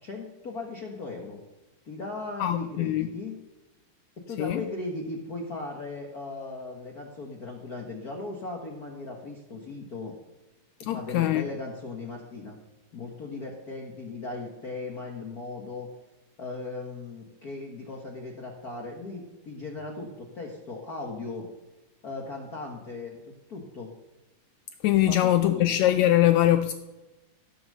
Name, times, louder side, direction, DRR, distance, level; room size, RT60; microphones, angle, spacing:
voice 1, 0.0-1.4 1.8-3.4 4.2-10.1 10.9-12.6 12.9-15.9 16.4-21.5 22.0-23.2 23.5-23.9 25.1-25.7, left 3 dB, 50° left, 1.1 m, -37 dB
voice 2, 2.4-3.1 4.4-4.6 10.8-11.5 24.8-26.7, left 13 dB, 80° left, 1.7 m, -22 dB
15.5 x 7.0 x 6.6 m
omnidirectional pair, 3.6 m